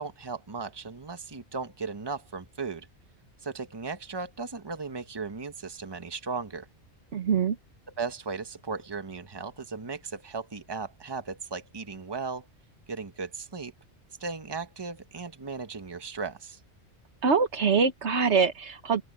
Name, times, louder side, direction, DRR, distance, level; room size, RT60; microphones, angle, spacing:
voice 1, 0.0-2.9 3.4-6.7 8.0-12.5 12.9-13.7 14.2-16.6, right 4 dB, 20° right, 1.2 m, -36 dB
voice 2, 7.1-7.6 17.2-19.0, right 5 dB, 70° right, 1.5 m, -24 dB
open air
omnidirectional pair, 1.2 m